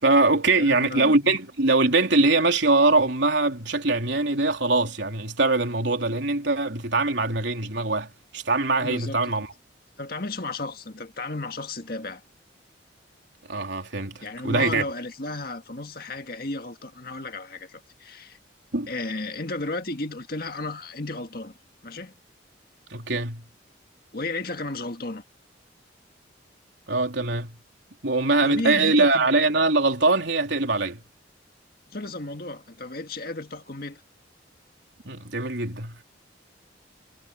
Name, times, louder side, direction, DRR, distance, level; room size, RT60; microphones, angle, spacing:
voice 1, 0.0-9.5 13.5-14.8 18.7-18.9 22.9-23.4 26.9-27.6 28.0-31.0 35.1-36.0, right 3 dB, 70° right, 3.6 m, -22 dB
voice 2, 0.6-1.4 8.8-9.3 10.0-12.2 14.2-18.4 18.9-21.5 21.8-22.1 24.1-25.2 28.3-29.3 31.9-34.0, left 2 dB, 50° left, 1.9 m, -34 dB
head